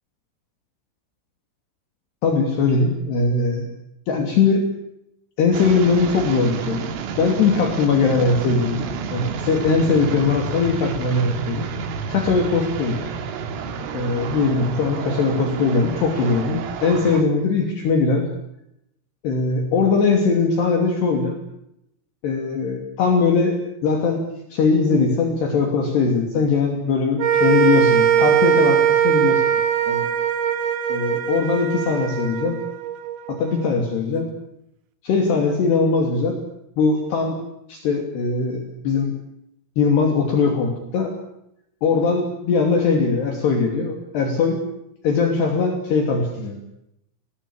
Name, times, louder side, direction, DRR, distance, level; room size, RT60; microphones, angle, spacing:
voice 1, 2.2-3.7 4.1-4.7 5.4-6.8 7.2-11.7 12.1-13.0 13.9-18.3 19.2-21.4 22.2-24.2 24.5-29.4 29.9-30.1 30.9-32.6 33.3-34.3 35.0-36.4 36.8-37.4 37.7-39.1 39.8-41.1 41.8-44.6 45.0-46.6, left 4 dB, 55° left, 2 dB, 4.7 m, -20 dB
sound 1, 5.5-17.2, right 5 dB, 75° right, 4.8 m, -30 dB
sound 2, 27.2-33.6, right 9 dB, 60° right, 2.3 m, -20 dB
29.0 x 19.5 x 8.6 m, 0.81 s
omnidirectional pair, 6.0 m